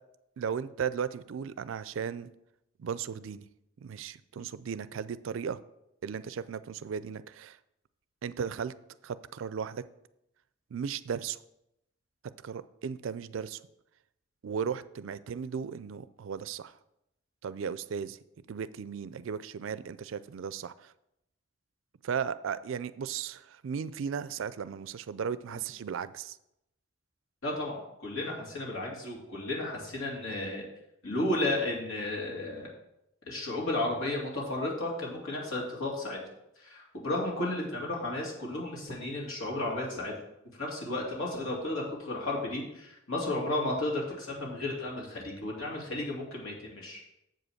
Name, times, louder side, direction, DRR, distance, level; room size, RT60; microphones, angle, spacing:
voice 1, 0.4-2.3 2.8-3.4 3.8-5.6 6.0-7.6 8.2-8.7 9.0-9.8 10.7-11.4 12.4-13.6 14.4-16.7 17.4-18.2 18.5-20.9 22.0-26.4, right 7 dB, 65° right, 16 dB, 0.4 m, -36 dB
voice 2, 27.4-30.6 31.0-32.7 33.3-36.2 36.6-40.1 40.6-47.0, left 2 dB, 80° left, -3 dB, 2.6 m, -33 dB
7.6 x 5.1 x 6.3 m, 0.84 s
head